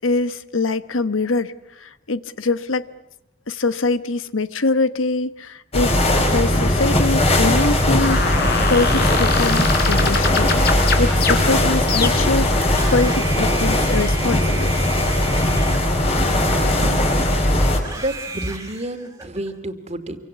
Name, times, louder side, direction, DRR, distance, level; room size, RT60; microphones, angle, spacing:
voice 1, 0.0-2.9 3.5-6.0 6.3-8.4 8.7-14.8, left 3 dB, 80° left, 14 dB, 1.1 m, -23 dB
sound 1, 5.7-17.8, left 1 dB, 30° left, 4.8 m, -19 dB
sound 2, 8.0-12.5, left 4 dB, 55° left, 4.5 m, -24 dB
Screaming, 12.7-17.1 17.8-19.5, right 3 dB, 15° right, 3.1 m, -35 dB
voice 2, 16.1-17.4 17.7-20.2, right 1 dB, 35° right, 8 dB, 2.5 m, -31 dB
27.0 x 24.5 x 8.3 m, 0.83 s
head